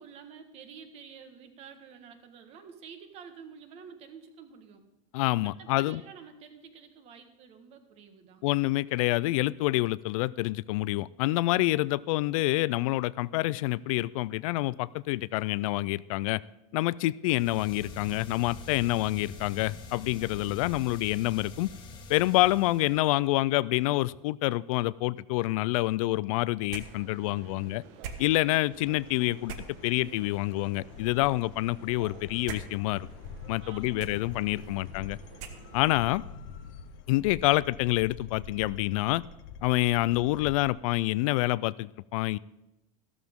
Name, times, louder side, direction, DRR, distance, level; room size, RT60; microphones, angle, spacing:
voice 1, 0.0-4.8 5.4-8.4 33.6-34.0, right 6 dB, 40° right, 8 dB, 1.4 m, -49 dB
voice 2, 5.1-6.0 8.4-16.4 16.7-21.7 22.1-27.8 28.2-29.5 29.8-33.1 33.5-35.2 35.7-36.2 37.1-39.2 39.6-42.4, left 18 dB, 80° left, 20 dB, 0.4 m, -27 dB
sound 1, 17.3-23.2, left 3 dB, 25° left, 1.5 m, -45 dB
sound 2, 26.7-36.0, right 6 dB, 65° right, 1.3 m, -46 dB
sound 3, 28.7-40.7, left 6 dB, 65° left, 0.9 m, -47 dB
14.0 x 13.0 x 3.7 m, 0.94 s
cardioid pair, 170°, 17 cm